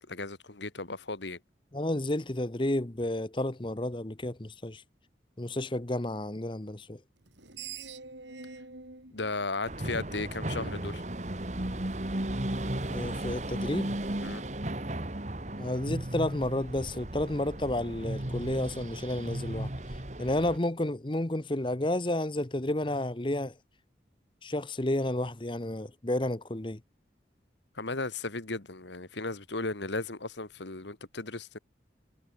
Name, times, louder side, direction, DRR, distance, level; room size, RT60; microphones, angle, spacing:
voice 1, 0.1-1.4 9.1-11.0 14.2-14.4 27.8-31.6, left 3 dB, 80° left, 2.1 m, -35 dB
voice 2, 1.7-4.8 5.4-7.0 12.9-13.9 15.6-19.7 20.2-23.5 24.4-26.8, left 1 dB, 25° left, 1.0 m, -31 dB
Screech, 7.2-10.4, right 5 dB, 90° right, 7.7 m, -46 dB
sound 1, 9.7-20.6, right 1 dB, 40° right, 2.0 m, -35 dB
head